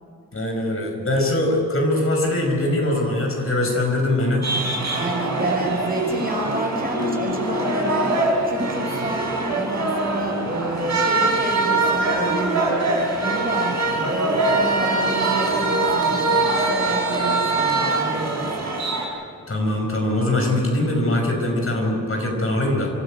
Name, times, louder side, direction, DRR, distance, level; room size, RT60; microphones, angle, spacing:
voice 1, 0.3-4.5 19.5-22.9, left 1 dB, 40° left, 1 dB, 5.3 m, -22 dB
sound 1, 4.4-19.1, right 2 dB, 55° right, 4.7 m, -23 dB
voice 2, 4.9-18.7, right 2 dB, 30° right, 0 dB, 5.9 m, -29 dB
sound 2, 6.6-11.8 12.1-12.2, left 7 dB, 70° left, 2.8 m, -35 dB
25.5 x 13.0 x 9.0 m, 2.4 s
cardioid pair, 65°, 32 cm